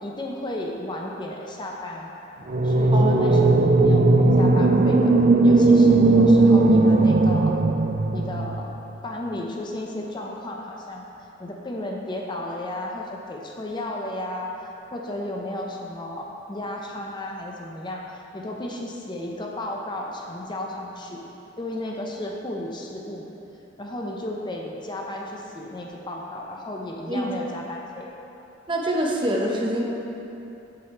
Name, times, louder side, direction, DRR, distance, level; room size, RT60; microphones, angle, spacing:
voice 1, 0.0-2.1 2.6-3.6 3.8-5.2 5.4-7.6 8.1-8.7 9.0-11.1 11.4-14.5 14.9-21.3 21.6-23.3 23.8-28.1, left 1 dB, 25° left, -1 dB, 0.6 m, -33 dB
sound 1, 2.5-8.6, right 2 dB, 45° right, 0.4 m, -17 dB
voice 2, 2.9-3.4 27.1-27.3 28.7-29.8, equal, 25° right, -2 dB, 0.9 m, -25 dB
7.6 x 7.6 x 4.3 m, 2.9 s
head